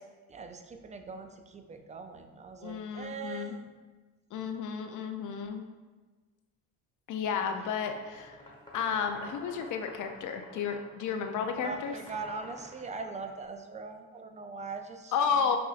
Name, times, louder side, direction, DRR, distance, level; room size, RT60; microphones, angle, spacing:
voice 1, 0.3-3.6 7.4-7.7 11.6-15.1, right 4 dB, 20° right, 6 dB, 0.4 m, -41 dB
voice 2, 2.6-3.6 4.3-5.6 7.1-8.4 8.7-11.9 15.1-15.6, left 6 dB, 55° left, 6 dB, 0.5 m, -32 dB
sound 1, 7.8-13.4, left 1 dB, 10° left, 1.2 m, -49 dB
5.8 x 2.5 x 2.4 m, 1.3 s
supercardioid pair, 60°, 37 cm